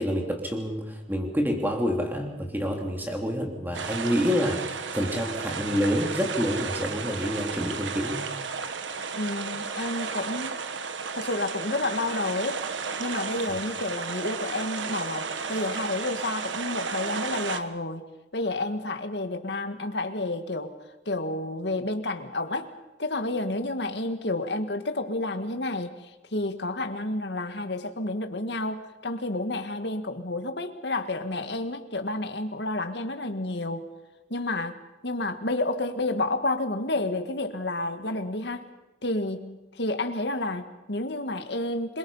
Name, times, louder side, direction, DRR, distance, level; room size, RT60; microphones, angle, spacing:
voice 1, 0.0-8.2, equal, 10° right, 2 dB, 3.1 m, -28 dB
sound 1, 3.7-17.6, right 5 dB, 90° right, 1.3 m, -33 dB
voice 2, 9.1-10.6 11.1-12.7 13.0-18.0 18.3-20.7 21.1-22.7 23.0-33.9 34.3-34.8 35.0-38.6 39.0-42.0, left 2 dB, 70° left, 7 dB, 1.8 m, -30 dB
26.5 x 22.5 x 5.7 m, 1.1 s
head